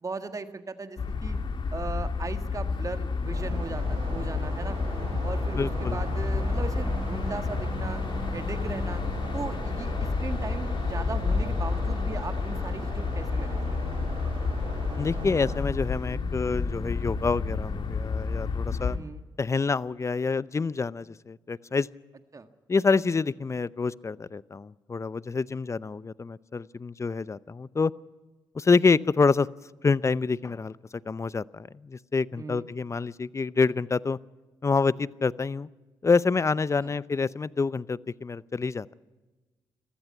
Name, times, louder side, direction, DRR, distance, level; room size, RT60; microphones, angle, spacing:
voice 1, 0.0-1.4 1.7-4.8 5.2-8.0 8.3-9.0 9.3-13.6 18.9-19.2 22.3-22.5 32.4-32.6 36.8-36.9, right 4 dB, 35° right, 9 dB, 1.7 m, -38 dB
sound 1, 1.0-19.0, left 4 dB, 60° left, 2.2 m, -30 dB
sound 2, 3.3-15.6, right 4 dB, 65° right, 7.0 m, -40 dB
voice 2, 5.5-6.0 15.0-19.0 19.4-21.9 22.7-27.9 28.5-29.5 29.8-30.8 31.1-34.2 34.6-35.7 36.0-38.9, left 4 dB, 30° left, 19 dB, 0.6 m, -27 dB
21.5 x 15.0 x 9.7 m, 1.2 s
supercardioid pair, 60°, 9 cm